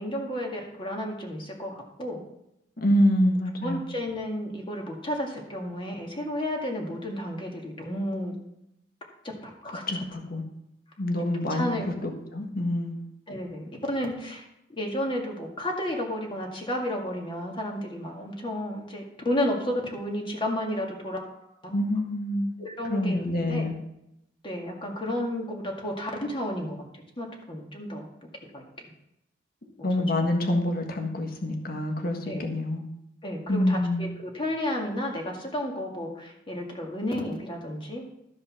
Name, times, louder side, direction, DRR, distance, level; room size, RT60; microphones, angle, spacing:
voice 1, 0.0-2.2 3.6-8.4 9.4-10.1 11.5-11.9 13.3-14.4 14.7-21.4 22.6-23.7 24.4-26.8 27.2-28.9 30.2-30.3 32.3-32.4 33.2-38.0, left 1 dB, 30° left, 0 dB, 2.1 m, -32 dB
voice 2, 2.8-3.9 9.9-10.4 11.0-13.0 21.7-22.6 22.9-23.8 29.8-32.9 33.5-34.1, left 1 dB, 55° left, 3 dB, 1.5 m, -26 dB
13.0 x 5.4 x 6.0 m, 0.83 s
head